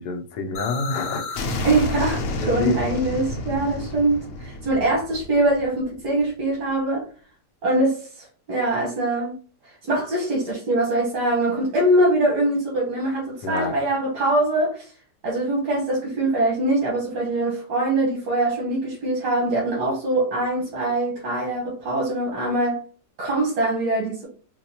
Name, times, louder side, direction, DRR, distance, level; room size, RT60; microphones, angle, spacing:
voice 1, 0.0-1.5 2.4-2.8 13.4-13.7, left 3 dB, 85° left, 1.2 m, -27 dB
sound 1, 0.5-6.3, left 2 dB, 65° left, 0.8 m, -30 dB
voice 2, 1.6-7.1 7.6-9.4 9.6-14.9 15.2-22.8 23.2-24.3, right 2 dB, 90° right, 1.7 m, -23 dB
4.1 x 2.2 x 2.8 m
omnidirectional pair, 1.7 m